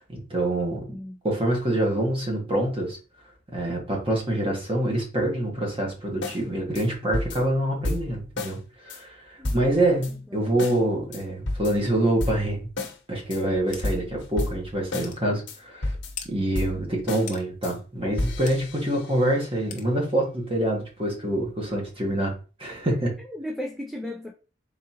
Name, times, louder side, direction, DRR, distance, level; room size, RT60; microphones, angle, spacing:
voice 1, 0.0-0.9 1.2-3.0 3.5-12.6 13.1-16.0 16.3-22.3 22.6-23.1, right 1 dB, 30° right, 1.3 m, -26 dB
sound 1, 6.2-6.4 6.8-6.9 7.1-8.6 8.9-9.0 9.4-10.1 10.6-10.8 11.1-13.0 13.3-15.1 15.5-17.3 17.6-17.8 18.0-19.4, left 2 dB, 75° left, 0.9 m, -32 dB
sound 2, 13.7-13.9 14.4-14.5 15.0-15.2 16.2-16.3 17.3-17.4 18.5-18.6 19.7-19.9, left 8 dB, 40° left, 0.6 m, -38 dB
voice 2, 23.2-24.3, left 1 dB, ahead, 0.4 m, -35 dB
3.9 x 3.7 x 2.8 m
head